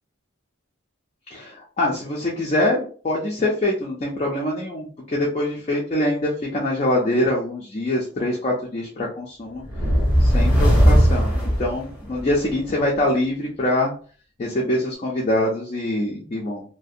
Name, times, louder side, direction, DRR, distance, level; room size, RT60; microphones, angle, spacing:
voice 1, 1.3-9.6 10.2-13.9 14.4-16.6, left 1 dB, 30° left, -3 dB, 0.4 m, -24 dB
sound 1, 9.6-12.4, equal, 5° right, 0.6 m, -18 dB
2.4 x 2.1 x 2.6 m, 0.42 s
head